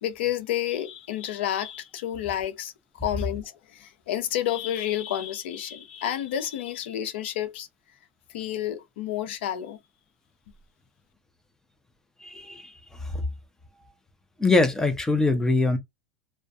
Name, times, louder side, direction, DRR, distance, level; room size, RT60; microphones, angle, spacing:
voice 1, 0.0-2.7 3.0-7.7 8.3-9.8, left 11 dB, 80° left, 0.6 m, -30 dB
voice 2, 12.2-12.7 13.1-13.2 14.4-15.8, left 3 dB, 10° left, 0.6 m, -22 dB
2.5 x 2.2 x 2.3 m
supercardioid pair, 125°, 6 cm